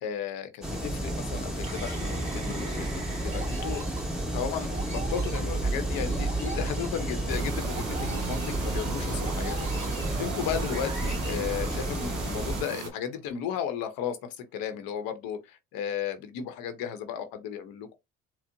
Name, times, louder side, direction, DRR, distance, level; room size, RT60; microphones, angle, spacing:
voice 1, 0.0-3.8 4.3-9.9 10.2-17.9, left 8 dB, 70° left, 0.8 m, -35 dB
sound 1, 0.6-12.6, right 1 dB, ahead, 1.2 m, -32 dB
sound 2, 1.6-12.3, right 3 dB, 20° right, 2.2 m, -36 dB
sound 3, 7.3-12.9, right 6 dB, 45° right, 1.2 m, -38 dB
4.4 x 2.0 x 2.6 m
supercardioid pair, 85°, 35 cm